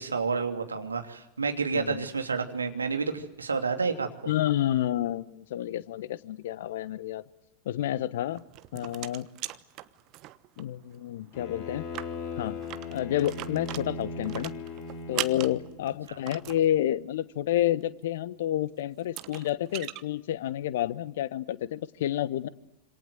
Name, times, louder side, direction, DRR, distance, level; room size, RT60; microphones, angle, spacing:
voice 1, 0.0-4.1, right 4 dB, 75° right, 6 dB, 2.9 m, -29 dB
voice 2, 1.7-2.1 4.3-7.2 7.6-8.4 8.7-9.3 10.6-11.9 12.4-12.6 12.9-14.5 15.1-22.5, left 12 dB, 55° left, 18 dB, 1.2 m, -29 dB
sound 1, 8.3-10.6 10.9-11.0 11.3-11.4 11.8-16.6 18.4-18.5 19.0-20.0, right 16 dB, 40° right, 1.2 m, -39 dB
Bowed string instrument, 11.3-15.8, left 4 dB, 30° left, 6.1 m, -38 dB
27.0 x 27.0 x 7.9 m, 0.85 s
figure-of-eight pair, 90°, 0 cm